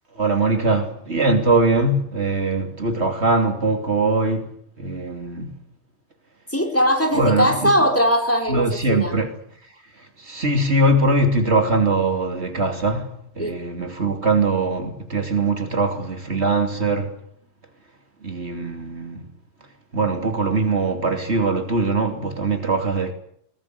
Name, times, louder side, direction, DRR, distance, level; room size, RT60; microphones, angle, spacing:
voice 1, 0.2-4.5 4.8-5.5 7.1-7.7 8.5-9.3 10.2-17.1 18.2-19.3 19.9-23.1, right 2 dB, 70° right, 3.3 m, -21 dB
voice 2, 6.5-9.2 13.4-13.5, equal, 10° left, 4.5 m, -20 dB
21.5 x 20.0 x 9.7 m
omnidirectional pair, 1.2 m